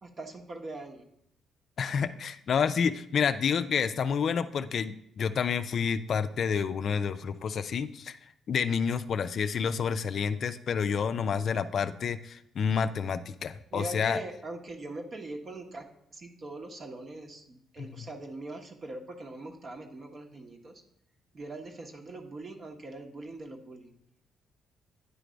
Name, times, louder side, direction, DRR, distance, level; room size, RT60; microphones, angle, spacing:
voice 1, 0.0-1.1 13.7-20.8 21.3-23.9, right 2 dB, 45° right, 4 dB, 1.1 m, -42 dB
voice 2, 1.8-8.2 8.5-14.2 17.8-17.9, left 6 dB, 55° left, 11 dB, 0.4 m, -29 dB
9.7 x 3.3 x 5.1 m, 0.74 s
cardioid pair, 90°, 0 cm